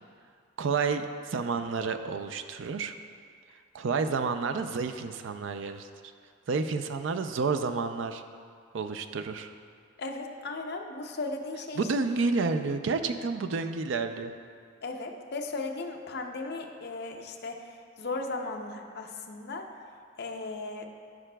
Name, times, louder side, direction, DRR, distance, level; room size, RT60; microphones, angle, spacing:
voice 1, 0.6-2.9 3.7-5.9 6.5-8.2 8.7-9.5 11.8-14.3, right 4 dB, 70° right, 8 dB, 0.4 m, -30 dB
voice 2, 10.0-11.9 14.8-19.7 20.2-20.9, left 3 dB, 55° left, 2 dB, 0.6 m, -36 dB
14.5 x 5.0 x 2.2 m, 2.2 s
head